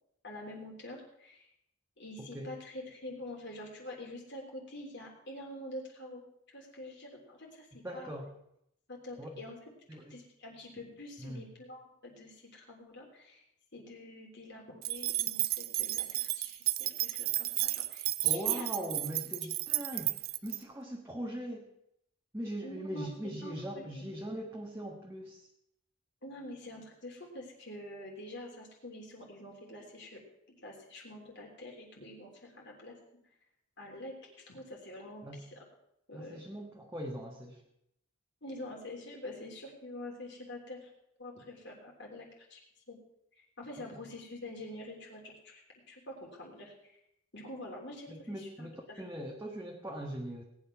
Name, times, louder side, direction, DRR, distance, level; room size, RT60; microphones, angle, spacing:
voice 1, 0.2-1.5 2.0-8.1 8.9-9.6 10.1-13.4 13.7-18.8 19.9-20.0 22.6-24.0 26.2-30.2 30.6-33.0 33.8-35.6 36.1-36.4 38.4-40.9 41.2-42.6 42.9-43.0 43.3-45.6 45.9-47.0 47.3-49.0, left 1 dB, 55° left, -1 dB, 3.3 m, -46 dB
voice 2, 7.8-8.3 9.2-9.4 9.9-10.2 11.2-11.5 18.2-20.1 20.4-21.7 22.3-25.5 35.2-35.4 36.1-37.6 43.8-44.0 48.1-50.4, equal, 10° right, -1 dB, 1.4 m, -40 dB
sound 1, 14.8-20.6, right 17 dB, 45° right, 0.5 m, -32 dB
18.5 x 9.5 x 6.0 m, 0.78 s
head